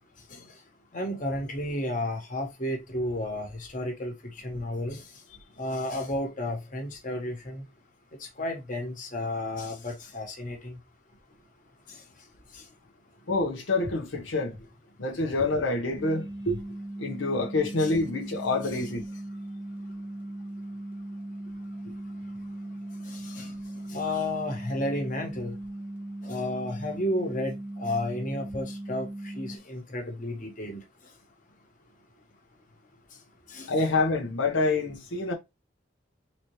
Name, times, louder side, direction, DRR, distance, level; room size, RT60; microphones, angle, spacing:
voice 1, 0.9-5.1 5.6-7.6 8.2-10.8 11.9-12.0 12.5-12.6 17.8-17.9 23.0-23.5 23.9-25.6 26.2-30.8 33.5-33.7, left 1 dB, 40° left, 1.3 m, -32 dB
voice 2, 13.3-14.5 15.0-16.6 17.0-19.0 33.7-35.3, left 3 dB, 85° left, 0.9 m, -27 dB
sound 1, 16.0-29.6, right 1 dB, 10° right, 0.6 m, -38 dB
4.0 x 3.0 x 3.1 m
head